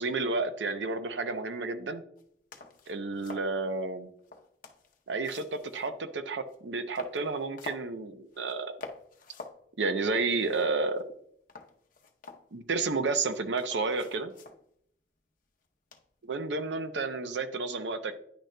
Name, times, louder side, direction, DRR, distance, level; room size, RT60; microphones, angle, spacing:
voice 1, 0.0-2.0 2.9-4.1 5.1-8.8 9.8-11.0 12.5-14.3 16.3-18.2, right 3 dB, 90° right, 10 dB, 0.7 m, -31 dB
sound 1, 2.2-2.3 2.5-3.5 4.2-6.1 6.5-6.6 6.9-7.9 8.3-8.5 8.8-9.6 9.9-10.0 10.3-11.1 11.5-12.8 13.3-14.6 15.9-16.2, left 4 dB, 50° left, 0.8 m, -47 dB
9.8 x 6.4 x 2.2 m, 0.72 s
head